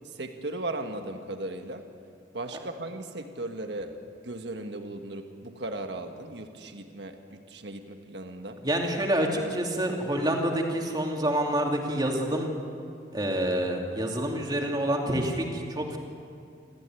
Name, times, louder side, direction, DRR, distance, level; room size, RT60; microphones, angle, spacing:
voice 1, 0.1-1.9 2.3-3.9 4.2-8.6, right 2 dB, 65° right, 5 dB, 1.5 m, -37 dB
voice 2, 8.6-12.5 13.1-16.0, right 1 dB, 25° right, 1 dB, 2.7 m, -27 dB
27.0 x 15.0 x 9.1 m, 2.4 s
head